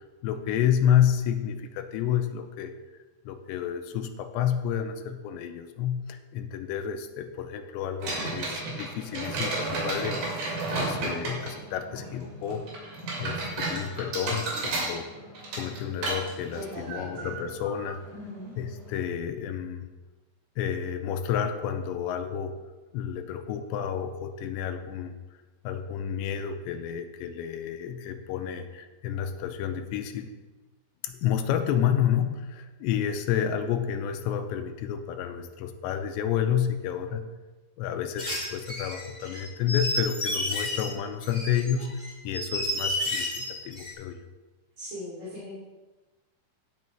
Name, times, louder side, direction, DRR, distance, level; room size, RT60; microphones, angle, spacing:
voice 1, 0.2-2.7 3.3-10.4 10.7-12.6 13.2-15.1 15.6-18.0 18.6-19.9 20.6-22.5 22.9-25.2 25.6-30.3 31.0-37.2 37.8-44.2, left 9 dB, 90° left, 7 dB, 2.9 m, -30 dB
sound 1, 8.0-19.0, right 2 dB, 70° right, 4.7 m, -34 dB
voice 2, 16.5-17.3 18.1-18.5 44.8-45.5, left 1 dB, 35° right, -11 dB, 3.0 m, -39 dB
sound 2, 38.2-40.9 41.2-43.9, left 1 dB, 65° left, 0.5 m, -31 dB
16.5 x 6.3 x 3.2 m, 1.2 s
omnidirectional pair, 5.1 m